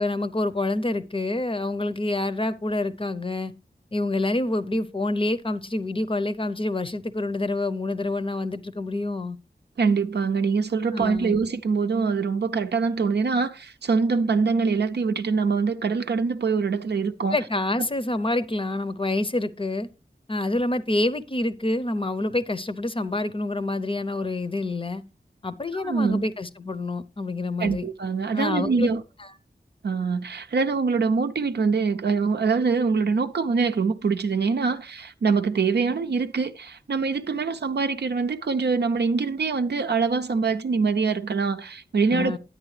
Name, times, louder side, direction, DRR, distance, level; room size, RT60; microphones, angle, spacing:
voice 1, 0.0-3.5 3.9-9.4 10.9-11.4 17.3-19.9 20.3-25.0 25.4-27.9 28.3-28.9 29.2-29.3 42.1-42.4, left 2 dB, 30° left, 0.6 m, -27 dB
voice 2, 9.8-17.4 25.7-26.2 27.6-29.0 29.8-42.4, right 5 dB, 80° right, 0.5 m, -24 dB
9.9 x 8.7 x 3.2 m
wide cardioid pair, 65°, 17 cm